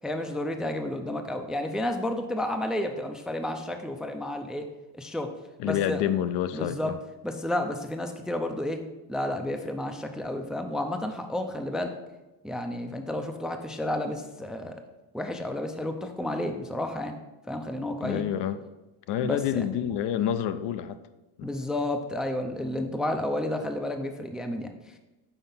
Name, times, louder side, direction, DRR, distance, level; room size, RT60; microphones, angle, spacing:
voice 1, 0.0-4.7 4.9-5.3 5.6-6.0 6.5-6.9 7.2-8.8 9.1-12.0 12.4-14.8 15.1-17.2 17.5-18.2 19.2-19.6 21.4-25.0, left 1 dB, ahead, 5 dB, 0.4 m, -31 dB
voice 2, 5.6-7.0 18.0-18.6 19.1-21.0 21.4-21.5, left 10 dB, 60° left, 11 dB, 0.6 m, -28 dB
5.8 x 4.4 x 5.4 m, 1.1 s
supercardioid pair, 90°, 47 cm